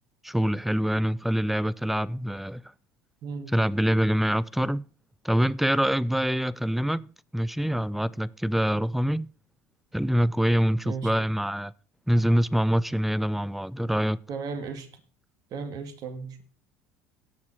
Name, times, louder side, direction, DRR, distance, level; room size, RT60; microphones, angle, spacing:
voice 1, 0.2-2.6 3.5-4.9 5.2-9.3 9.9-11.7 12.1-14.2, equal, ahead, 0.4 m, -25 dB
voice 2, 3.2-3.6 10.8-11.1 14.3-14.9 15.5-16.4, right 5 dB, 50° right, 2.0 m, -35 dB
16.5 x 6.7 x 4.4 m
hypercardioid pair, 70°, 8 cm